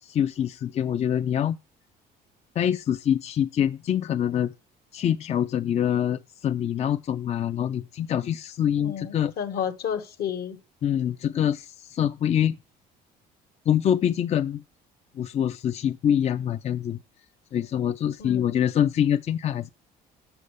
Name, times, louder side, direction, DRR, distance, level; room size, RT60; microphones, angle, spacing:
voice 1, 0.0-1.6 2.6-4.5 4.9-9.3 10.8-12.6 13.7-14.6 15.2-17.0 17.5-19.7, left 9 dB, 40° left, 0.4 m, -25 dB
voice 2, 8.7-10.6 18.2-18.4, left 8 dB, 70° left, 1.3 m, -31 dB
6.9 x 6.5 x 6.4 m
cardioid pair, 110°, 17 cm